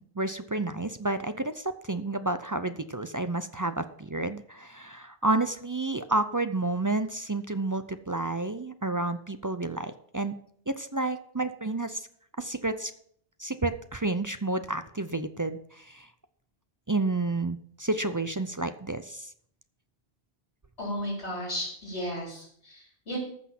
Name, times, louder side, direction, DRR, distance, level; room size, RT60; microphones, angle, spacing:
voice 1, 0.2-10.4 10.7-12.1 12.4-12.9 13.4-16.1 16.9-19.3, right 2 dB, 30° right, 10 dB, 0.4 m, -30 dB
voice 2, 20.8-23.2, equal, 85° left, -3 dB, 4.8 m, -34 dB
14.0 x 6.1 x 6.0 m, 0.64 s
omnidirectional pair, 1.1 m